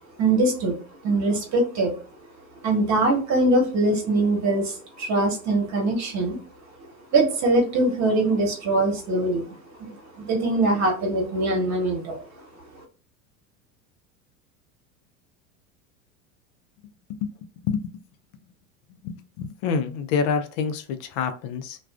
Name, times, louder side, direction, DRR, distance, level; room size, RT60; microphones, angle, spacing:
voice 1, 0.2-0.8 1.0-1.9 2.6-6.4 7.1-12.2, right 2 dB, 40° right, 2 dB, 1.2 m, -22 dB
voice 2, 17.2-17.9 18.9-21.8, left 6 dB, 60° left, 8 dB, 0.5 m, -28 dB
2.3 x 2.3 x 2.3 m, 0.38 s
hypercardioid pair, 85°, 41 cm